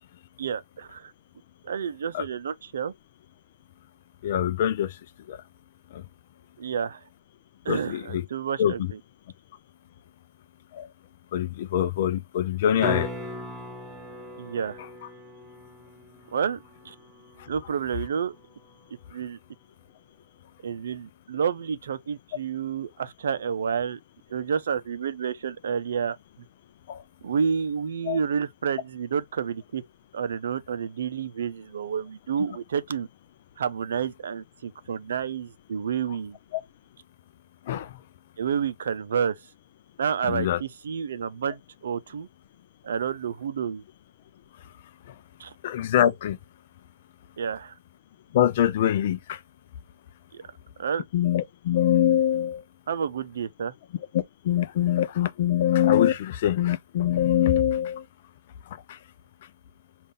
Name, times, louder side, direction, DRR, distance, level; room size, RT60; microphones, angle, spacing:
voice 1, 0.4-1.1 1.6-2.9 6.6-7.0 7.6-8.8 14.4-14.8 16.3-16.6 16.8-16.9 17.5-18.3 19.1-19.4 20.6-24.0 24.3-26.2 27.2-29.8 30.1-33.1 33.6-36.4 38.4-39.3 40.0-42.3 42.8-43.8 45.4-45.5 47.4-47.7 50.3-50.4 50.8-51.0 52.9-53.7, right 7 dB, 55° right, 0.6 m, -29 dB
voice 2, 4.2-5.0 5.3-5.4 5.9-6.1 7.7-8.2 8.6-8.9 10.7-10.9 11.3-13.1 17.4-17.5 26.9-27.0 28.1-28.2 36.5-36.6 37.6-38.0 40.2-40.6 45.1-45.2 45.6-46.4 48.3-49.4 51.1-52.6 54.1-58.1 58.7-59.0, left 11 dB, 40° left, 0.5 m, -24 dB
sound 1, 12.8-18.8 23.5-23.6, left 1 dB, ahead, 0.9 m, -39 dB
5.2 x 2.5 x 3.3 m
figure-of-eight pair, 130°, 0 cm